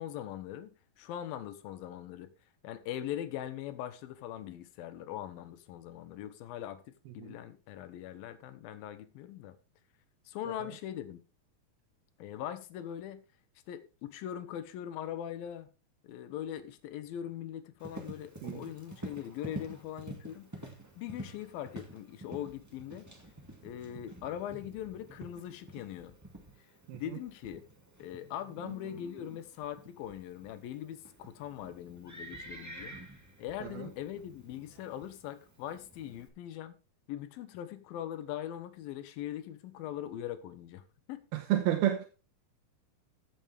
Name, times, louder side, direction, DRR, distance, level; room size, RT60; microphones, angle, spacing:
voice 1, 0.0-2.3 2.6-6.8 7.1-9.5 10.3-11.2 12.2-13.2 13.7-15.7 16.0-20.5 21.0-23.1 23.6-26.2 26.9-27.6 28.0-33.0 33.4-36.8 37.1-40.8 41.1-41.3, left 11 dB, 80° left, 2.7 m, -41 dB
Livestock farm animals working animals, 17.8-36.3, right 1 dB, 15° right, 0.7 m, -49 dB
voice 2, 41.3-42.1, right 12 dB, 90° right, 3.0 m, -31 dB
15.0 x 7.1 x 3.4 m
omnidirectional pair, 4.2 m